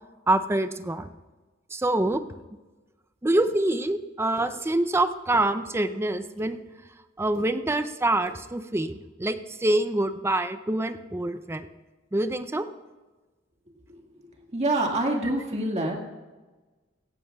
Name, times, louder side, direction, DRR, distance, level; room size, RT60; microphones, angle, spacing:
voice 1, 0.3-1.1 1.7-2.2 3.2-6.6 7.2-11.7 12.1-12.7, right 1 dB, 15° right, 11 dB, 0.5 m, -26 dB
sound 1, 3.4-3.5 4.4-4.5 5.1-5.5 6.1-6.5 7.2-7.5 8.1-8.4, right 1 dB, 70° right, 3.9 m, -42 dB
voice 2, 14.5-16.0, right 1 dB, 35° right, 1 dB, 1.8 m, -26 dB
17.0 x 14.5 x 2.3 m, 1.2 s
head